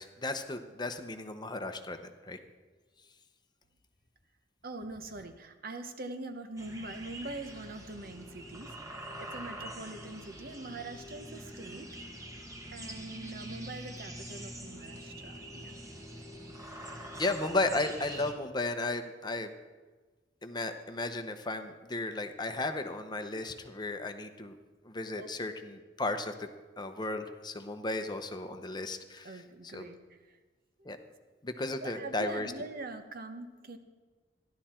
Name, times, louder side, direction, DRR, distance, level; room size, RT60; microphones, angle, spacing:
voice 1, 0.0-2.4 17.2-19.5 20.4-24.6 24.8-26.5 26.8-29.4 29.7-29.8 30.8-31.0 31.4-32.5, left 2 dB, 25° left, 7 dB, 0.8 m, -34 dB
voice 2, 4.6-11.9 12.7-15.8 25.2-25.3 29.2-30.4 30.8-30.9 31.8-33.8, right 2 dB, 55° right, 8 dB, 1.0 m, -43 dB
sound 1, 6.6-18.3, right 1 dB, 20° right, 1.3 m, -45 dB
14.5 x 11.5 x 4.4 m, 1.3 s
head